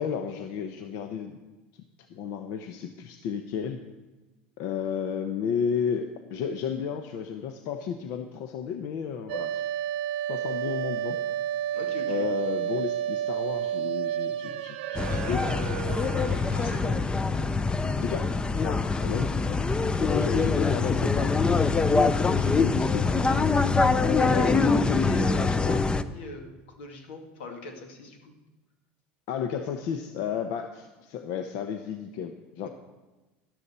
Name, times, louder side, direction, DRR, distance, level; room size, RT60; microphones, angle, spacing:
voice 1, 0.0-1.4 1.7-1.8 2.1-3.8 4.6-9.7 10.3-11.2 12.1-15.7 16.8-17.0 17.8-18.3 18.6-19.3 19.8-21.7 22.3-23.1 24.2-25.0 29.3-32.7, left 7 dB, 65° left, 7 dB, 0.8 m, -33 dB
sound 1, 9.3-17.8, right 11 dB, 80° right, 0.8 m, -31 dB
voice 2, 11.7-12.3 16.5-17.0 24.2-28.3 32.6-32.7, left 3 dB, 85° left, 4 dB, 1.9 m, -40 dB
sound 2, 14.9-26.0, left 4 dB, 15° left, 0.6 m, -24 dB
12.5 x 11.5 x 4.3 m, 1.1 s
supercardioid pair, 105°, 6 cm